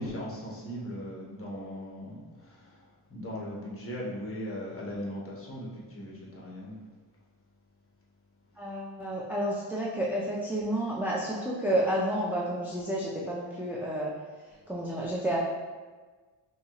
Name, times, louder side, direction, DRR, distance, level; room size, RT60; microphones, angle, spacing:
voice 1, 0.0-6.8, equal, 30° left, -4 dB, 1.0 m, -39 dB
voice 2, 8.6-14.1 14.7-15.4, right 1 dB, 5° right, -5 dB, 0.3 m, -30 dB
5.3 x 2.4 x 3.0 m, 1.4 s
wide cardioid pair, 125°, 47 cm